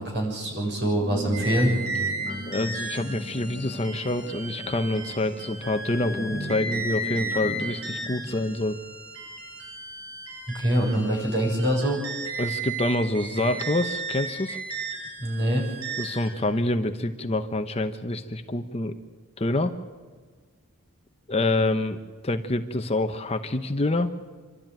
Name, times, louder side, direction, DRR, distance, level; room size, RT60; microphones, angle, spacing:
voice 1, 0.0-1.8 10.5-12.0 15.2-15.7, right 1 dB, 50° right, -1 dB, 6.9 m, -24 dB
sound 1, 0.9-8.4, equal, 25° right, 6.3 m, -38 dB
sound 2, 1.3-16.3, right 3 dB, 75° right, 7.9 m, -35 dB
voice 2, 2.5-8.8 12.4-14.6 16.0-19.0 19.4-19.7 21.3-22.0 22.2-24.1, left 2 dB, 30° left, 8 dB, 0.9 m, -27 dB
27.0 x 12.5 x 9.1 m, 1.5 s
head